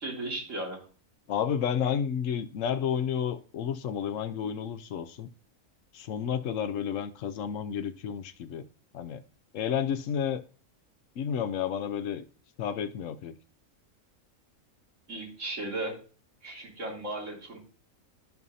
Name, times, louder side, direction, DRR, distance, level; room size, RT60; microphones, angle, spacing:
voice 1, 0.0-0.8 15.1-15.9 16.4-17.6, right 2 dB, 65° right, 3.3 m, -35 dB
voice 2, 1.3-5.3 5.9-8.6 8.9-9.2 9.5-10.4 11.2-12.2 12.6-13.3, left 8 dB, 75° left, 1.1 m, -31 dB
13.5 x 5.5 x 2.7 m
omnidirectional pair, 1.4 m